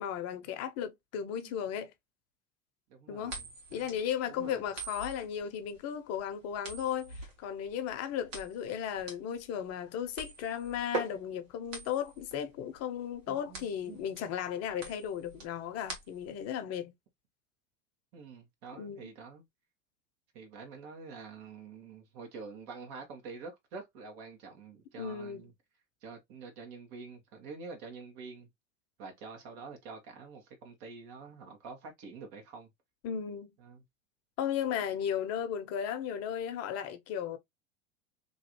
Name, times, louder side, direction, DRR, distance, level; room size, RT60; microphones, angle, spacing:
voice 1, 0.0-1.9 3.1-3.4 3.7-16.9 18.8-19.1 25.0-25.5 33.0-33.5 34.4-37.4, left 9 dB, 40° left, 0.8 m, -35 dB
voice 2, 2.9-4.0 4.4-4.6 13.3-14.0 18.1-19.4 20.3-25.5 26.0-28.5 29.0-32.7 33.6-33.8, right 4 dB, 55° right, 1.5 m, -47 dB
sound 1, 3.2-16.4, right 3 dB, 75° right, 1.6 m, -44 dB
3.0 x 2.7 x 2.9 m
hypercardioid pair, 95°, 39 cm